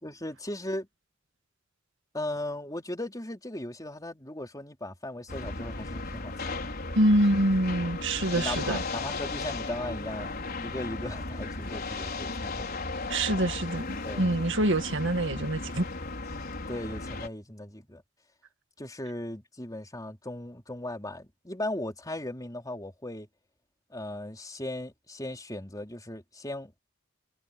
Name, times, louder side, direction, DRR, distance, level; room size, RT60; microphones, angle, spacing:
voice 1, 0.0-0.9 2.1-6.8 8.3-12.8 14.0-14.3 16.7-18.0 18.8-23.3 23.9-26.8, left 1 dB, 15° left, 4.0 m, -37 dB
sound 1, 5.3-17.3, left 3 dB, 50° left, 5.1 m, -35 dB
voice 2, 7.0-8.8 13.1-15.9, right 1 dB, 60° right, 1.9 m, -25 dB
head